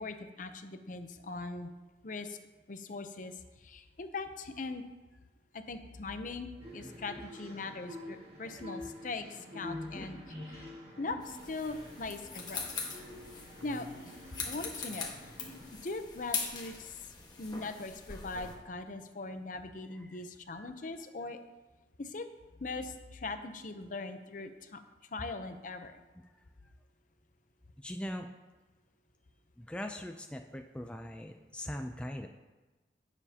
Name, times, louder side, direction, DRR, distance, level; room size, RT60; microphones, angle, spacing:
voice 1, 0.0-1.7 2.0-2.4 2.7-4.8 5.5-10.2 10.5-10.7 11.0-12.7 13.6-15.1 15.8-21.4 22.0-22.3 22.6-24.8 25.1-26.0, left 3 dB, 45° left, 8 dB, 0.7 m, -41 dB
sound 1, 6.6-15.8, left 1 dB, 35° right, 2.0 m, -47 dB
sound 2, 11.2-18.5, left 4 dB, 25° left, 1.4 m, -42 dB
voice 2, 27.8-28.3 29.6-32.3, left 1 dB, 5° left, 4 dB, 0.4 m, -41 dB
16.5 x 7.2 x 2.8 m, 1.2 s
head